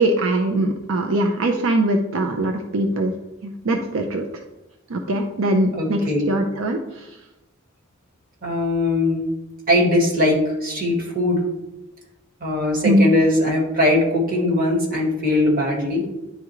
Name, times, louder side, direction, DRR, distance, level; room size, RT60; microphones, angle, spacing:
voice 1, 0.0-3.1 3.4-4.3 4.9-6.0 6.3-7.1 12.8-13.1, right 1 dB, 75° right, 3 dB, 0.6 m, -21 dB
voice 2, 5.7-6.3 8.4-9.3 9.7-11.4 12.4-16.1, left 1 dB, 45° right, 0 dB, 1.7 m, -20 dB
10.0 x 3.6 x 3.1 m, 0.96 s
head